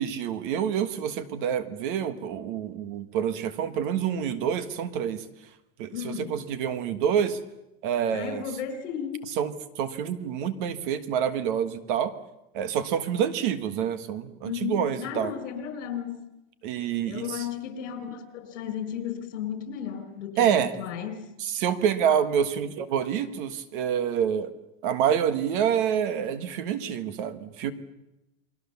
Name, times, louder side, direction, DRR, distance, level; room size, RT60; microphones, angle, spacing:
voice 1, 0.0-5.2 5.8-7.4 7.8-8.4 9.4-12.1 12.5-15.3 16.6-17.4 20.4-20.7 21.4-24.5 24.8-27.7, right 8 dB, 40° right, 12 dB, 1.5 m, -27 dB
voice 2, 5.9-6.4 8.1-9.2 14.4-16.3 17.1-21.3, left 8 dB, 65° left, 9 dB, 4.9 m, -34 dB
29.0 x 22.0 x 7.1 m, 0.93 s
supercardioid pair, 180°, 39 cm